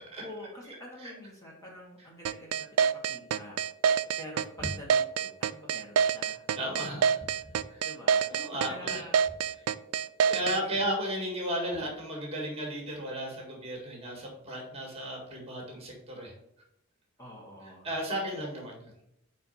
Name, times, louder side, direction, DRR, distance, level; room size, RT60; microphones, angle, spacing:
voice 1, 0.2-3.6 4.2-6.4 7.8-9.2 10.4-10.8 17.2-17.9, left 1 dB, 15° left, -3 dB, 1.3 m, -47 dB
sound 1, 2.2-10.6, right 7 dB, 85° right, 0.3 m, -26 dB
voice 2, 6.5-7.2 7.7-7.8 8.3-9.0 10.3-16.3 17.8-18.9, equal, 30° right, 0 dB, 1.7 m, -34 dB
5.0 x 4.4 x 5.6 m, 0.80 s
head